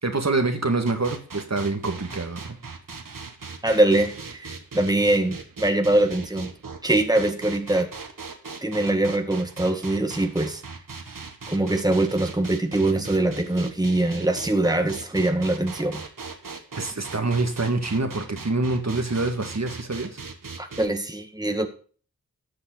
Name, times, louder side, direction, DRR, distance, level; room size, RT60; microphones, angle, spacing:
voice 1, 0.0-2.4 16.8-20.2, right 3 dB, 50° right, 5 dB, 2.0 m, -26 dB
sound 1, 0.9-20.9, right 4 dB, 70° right, 1.7 m, -39 dB
voice 2, 3.6-6.5 6.8-7.9 8.6-10.6 11.5-16.0 20.6-21.7, right 1 dB, 10° right, 6 dB, 1.8 m, -23 dB
13.5 x 7.8 x 4.0 m, 0.41 s
wide cardioid pair, 50°, 34 cm